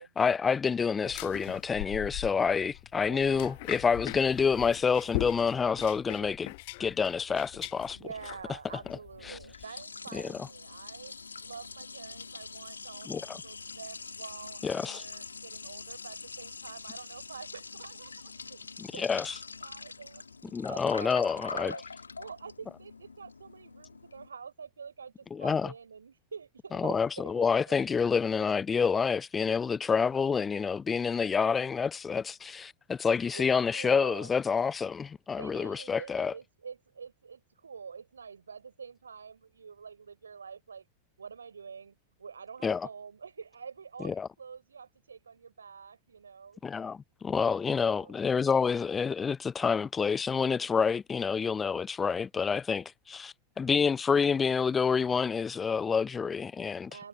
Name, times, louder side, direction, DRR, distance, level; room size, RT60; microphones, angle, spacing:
voice 1, 0.2-6.5 6.8-8.0 9.3-9.4 10.1-10.2 13.1-13.4 14.6-15.0 18.8-19.4 20.5-21.7 25.3-25.7 26.7-36.3 42.6-42.9 44.0-44.3 46.6-56.9, left 6 dB, 15° left, 0.6 m, -28 dB
sound 1, 1.0-9.7, left 26 dB, 50° left, 1.0 m, -41 dB
voice 2, 3.0-3.6 7.9-11.1 11.4-13.1 13.4-19.1 19.6-20.3 20.7-21.8 22.2-27.8 33.3-33.5 33.7-34.3 35.4-40.9 41.2-46.6 47.9-48.2 56.9-57.1, right 6 dB, 70° right, 4.0 m, -46 dB
Liquid, 9.1-24.3, left 4 dB, 75° left, 1.9 m, -44 dB
figure-of-eight pair, 90°, 0 cm